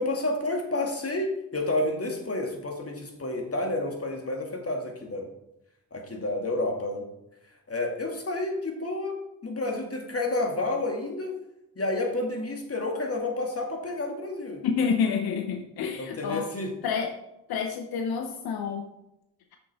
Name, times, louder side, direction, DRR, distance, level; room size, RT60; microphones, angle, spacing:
voice 1, 0.0-5.3 5.9-7.0 7.7-9.2 9.4-11.3 11.8-14.9 16.0-16.7, left 2 dB, 40° left, 1 dB, 2.2 m, -30 dB
voice 2, 14.6-16.5 16.8-17.1 17.5-18.9, left 6 dB, 90° left, 5 dB, 0.7 m, -28 dB
7.8 x 7.1 x 3.5 m, 0.87 s
supercardioid pair, 45°, 36 cm